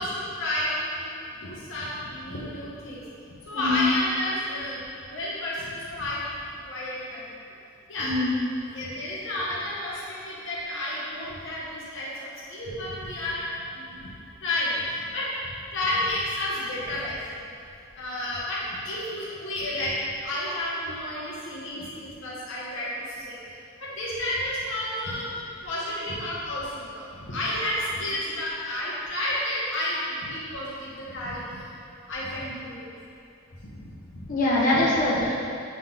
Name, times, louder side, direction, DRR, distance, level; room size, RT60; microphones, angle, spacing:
voice 1, 0.0-3.0 3.4-6.2 6.6-7.4 7.9-8.1 8.7-13.4 13.7-14.1 14.4-15.3 15.7-17.2 18.0-19.9 20.2-23.4 23.8-25.3 25.6-31.7 32.1-32.8 33.6-34.3 34.7-34.8 35.1-35.3, left 1 dB, 65° left, -7 dB, 1.0 m, -31 dB
voice 2, 3.5-3.8 8.0-8.3 34.3-35.3, left 2 dB, 40° left, -7 dB, 1.2 m, -23 dB
7.3 x 3.8 x 3.8 m, 2.6 s
head